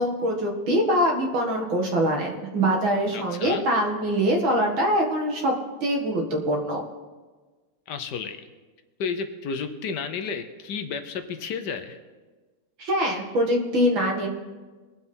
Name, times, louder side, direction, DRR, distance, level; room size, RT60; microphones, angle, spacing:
voice 1, 0.0-5.5 5.8-6.8 12.8-14.3, equal, 85° right, 1 dB, 2.6 m, -23 dB
voice 2, 3.1-3.7 7.9-8.4 9.0-12.0, left 5 dB, 65° left, 9 dB, 1.3 m, -32 dB
22.0 x 7.3 x 4.4 m, 1.3 s
omnidirectional pair, 2.1 m